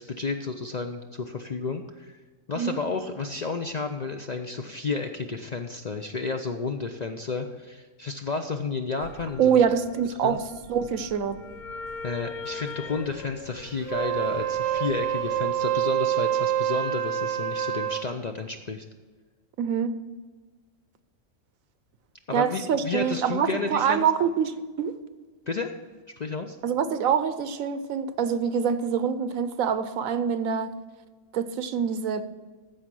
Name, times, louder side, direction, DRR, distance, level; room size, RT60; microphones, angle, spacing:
voice 1, 0.0-2.1 2.5-9.6 10.2-10.4 12.0-18.8 22.3-24.1 25.5-25.7 26.2-26.6, left 4 dB, 50° left, 5 dB, 0.5 m, -31 dB
sound 1, 9.0-15.5, left 4 dB, 70° left, 1.1 m, -41 dB
voice 2, 9.4-10.4 10.7-11.4 19.6-19.9 22.3-24.9 26.6-30.7 31.3-32.2, right 7 dB, 85° right, 12 dB, 1.2 m, -25 dB
Wind instrument woodwind instrument, 13.8-18.1, right 10 dB, 65° right, 1.0 m, -26 dB
14.0 x 5.1 x 6.1 m, 1.4 s
omnidirectional pair, 1.4 m